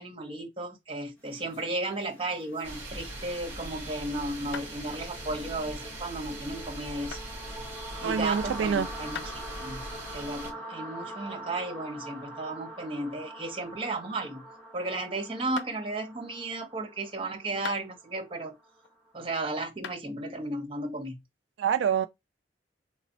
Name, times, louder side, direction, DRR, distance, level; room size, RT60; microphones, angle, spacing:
voice 1, 0.0-7.2 8.0-14.4 14.7-18.5 19.1-21.2, right 2 dB, 30° right, 1.2 m, -34 dB
sound 1, 1.1-3.2 4.5-4.7 7.1-7.3 9.1-9.4 12.6-14.0 14.3-14.7 15.6-15.8 17.6-18.3 18.8-19.3 19.8-20.0, left 7 dB, 80° left, 0.4 m, -43 dB
sound 2, 1.3-19.1, right 1 dB, 10° left, 1.2 m, -45 dB
sound 3, 2.6-10.5, right 1 dB, 10° right, 1.4 m, -41 dB
voice 2, 8.0-8.9 21.6-22.1, right 7 dB, 85° right, 0.3 m, -26 dB
3.3 x 2.0 x 4.0 m
head